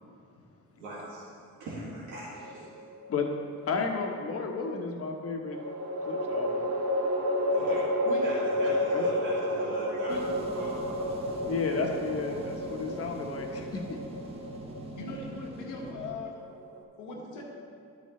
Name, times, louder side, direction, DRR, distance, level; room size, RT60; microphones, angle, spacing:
voice 1, 0.8-2.8 7.5-11.1, right 1 dB, 90° right, -9 dB, 2.1 m, -41 dB
sound 1, 2.4-3.2 5.5-16.8, left 1 dB, 55° right, 1.1 m, -31 dB
voice 2, 3.6-5.6 6.1-6.7 8.6-9.0 11.4-13.8, left 4 dB, 50° left, 2 dB, 1.2 m, -32 dB
voice 3, 9.9-10.2 15.0-16.4 17.0-17.4, left 4 dB, 90° left, -1 dB, 1.7 m, -40 dB
sound 2, 10.1-16.1, right 1 dB, 20° right, 1.5 m, -43 dB
11.5 x 8.2 x 3.2 m, 2.3 s
cardioid pair, 90°, 30 cm